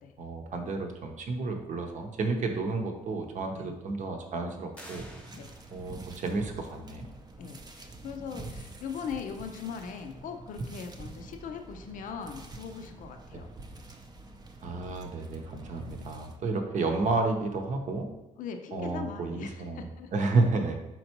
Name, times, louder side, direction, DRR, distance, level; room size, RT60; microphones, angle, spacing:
voice 1, 0.2-5.0 5.7-7.1 13.3-13.4 14.6-18.1 18.7-19.8 20.1-20.8, right 3 dB, 55° right, 4 dB, 0.7 m, -31 dB
sound 1, 4.7-6.1, equal, 10° left, 0.8 m, -50 dB
sound 2, 5.0-16.4, right 2 dB, 25° right, 0.5 m, -46 dB
voice 2, 7.4-13.5 18.4-20.1, left 6 dB, 65° left, 6 dB, 0.5 m, -40 dB
4.4 x 3.9 x 2.9 m, 0.98 s
cardioid pair, 90°, 15 cm